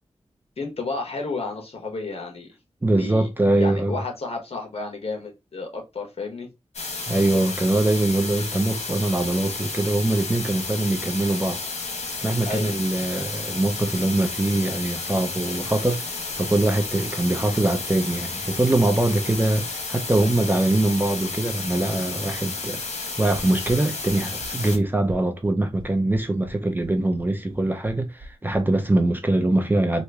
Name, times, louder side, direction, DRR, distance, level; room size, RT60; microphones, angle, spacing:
voice 1, 0.6-2.5 3.0-3.3 3.6-6.5 12.4-12.8, left 3 dB, 60° left, 1.1 m, -32 dB
voice 2, 2.8-4.0 7.1-11.6 12.2-16.1 16.4-22.8 23.2-30.0, right 2 dB, 15° right, 0.5 m, -23 dB
sound 1, 6.7-24.8, left 3 dB, 85° left, 1.0 m, -32 dB
sound 2, 23.3-28.6, right 1 dB, 45° right, 1.2 m, -43 dB
3.0 x 2.5 x 3.3 m
wide cardioid pair, 105°, 11 cm